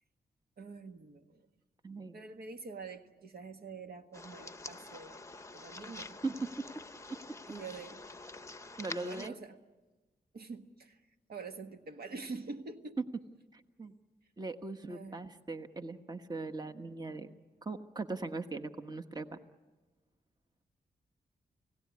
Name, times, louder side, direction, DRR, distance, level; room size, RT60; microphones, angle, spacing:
voice 1, 0.6-1.5 2.1-5.2 5.5-6.2 7.5-8.0 8.9-9.6 10.3-11.0 11.3-13.0 14.9-15.2, right 4 dB, 70° right, 6 dB, 1.6 m, -46 dB
voice 2, 1.8-2.2 6.2-6.5 8.8-9.3 13.5-13.9 14.4-17.3 17.6-19.4, right 3 dB, 25° right, 8 dB, 1.3 m, -40 dB
sound 1, 4.1-9.3, left 3 dB, 15° left, 0.8 m, -47 dB
30.0 x 17.5 x 9.7 m, 1.2 s
cardioid pair, 70°, 17 cm